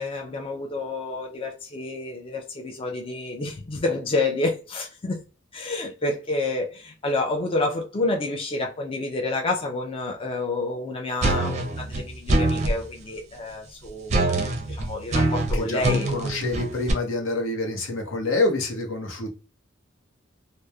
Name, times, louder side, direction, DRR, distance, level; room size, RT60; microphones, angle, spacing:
voice 1, 0.0-5.2 5.5-16.1, left 2 dB, 30° left, 0.4 m, -29 dB
sound 1, 11.2-12.8 14.1-16.9, right 2 dB, 35° right, 0.5 m, -24 dB
voice 2, 16.1-19.3, left 2 dB, 80° left, 0.8 m, -27 dB
2.9 x 2.0 x 2.2 m
head